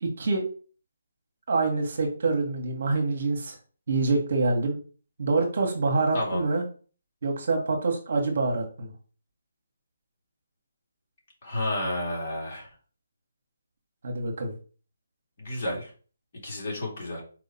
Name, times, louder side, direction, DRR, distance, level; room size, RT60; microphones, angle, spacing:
voice 1, 0.0-0.5 1.5-3.5 3.9-4.8 5.2-6.6 7.2-8.9 14.0-14.5, right 3 dB, 55° right, 3 dB, 1.3 m, -26 dB
voice 2, 11.4-12.7 15.4-15.9 16.3-17.2, left 1 dB, 45° left, -2 dB, 2.3 m, -31 dB
4.5 x 2.8 x 4.2 m, 0.39 s
figure-of-eight pair, 150°, 0 cm